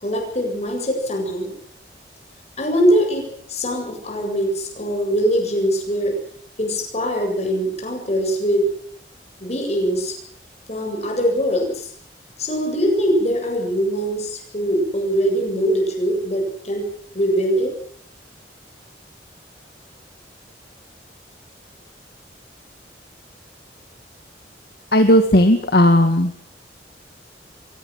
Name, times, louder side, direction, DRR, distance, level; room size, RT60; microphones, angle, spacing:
voice 1, 0.0-1.5 2.6-6.2 6.6-8.7 9.4-10.2 10.7-11.9 12.4-16.9 17.1-17.7, equal, 40° left, 2 dB, 7.7 m, -22 dB
voice 2, 24.9-26.4, equal, 60° left, 6 dB, 2.1 m, -15 dB
23.5 x 19.5 x 7.7 m, 0.63 s
head